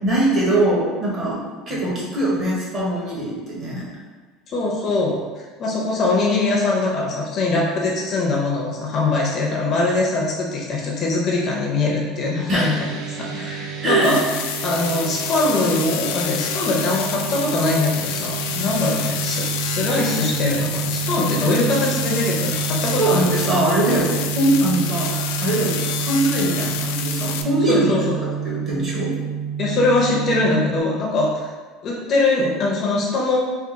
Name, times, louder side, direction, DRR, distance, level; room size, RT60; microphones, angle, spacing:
voice 1, 0.0-1.4 1.7-3.9 12.5-12.7 13.8-14.1 23.0-27.9 28.4-29.1, right 1 dB, 25° right, -5 dB, 0.9 m, -21 dB
voice 2, 4.5-12.9 13.2-14.2 14.6-23.3 27.7-28.2 29.6-31.5 31.8-33.4, left 2 dB, 30° left, -3 dB, 0.5 m, -22 dB
sound 1, 12.5-30.8, right 8 dB, 65° right, 0.5 m, -29 dB
sound 2, 14.0-27.4, left 8 dB, 85° left, 0.3 m, -28 dB
3.5 x 2.3 x 3.8 m, 1.4 s
cardioid pair, 170°, 0 cm